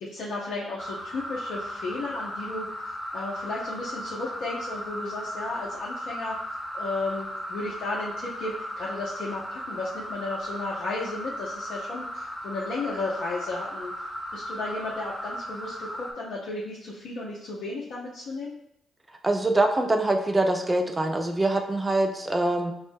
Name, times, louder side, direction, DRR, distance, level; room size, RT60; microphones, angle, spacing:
voice 1, 0.0-2.7 3.1-6.4 6.7-13.9 14.3-18.5, left 2 dB, 70° left, -4 dB, 0.6 m, -34 dB
sound 1, 0.8-16.1, equal, 10° left, 1.1 m, -36 dB
voice 2, 19.2-22.7, right 2 dB, 25° right, 5 dB, 0.6 m, -24 dB
4.5 x 2.0 x 3.4 m, 0.81 s
hypercardioid pair, 45°, 0 cm